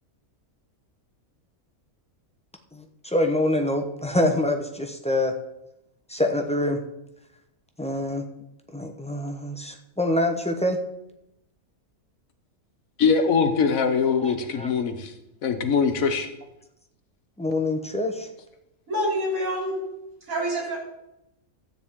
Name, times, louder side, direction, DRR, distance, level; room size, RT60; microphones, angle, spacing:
voice 1, 2.7-5.3 6.1-6.8 7.8-8.3 8.7-10.8 14.2-14.7 17.4-18.3, left 1 dB, 5° left, 4 dB, 0.6 m, -25 dB
voice 2, 13.0-15.1 15.4-16.3, left 5 dB, 70° left, 8 dB, 1.4 m, -22 dB
voice 3, 18.9-19.9 20.3-20.8, equal, 70° right, -3 dB, 3.6 m, -26 dB
13.0 x 8.9 x 3.6 m, 0.86 s
omnidirectional pair, 1.5 m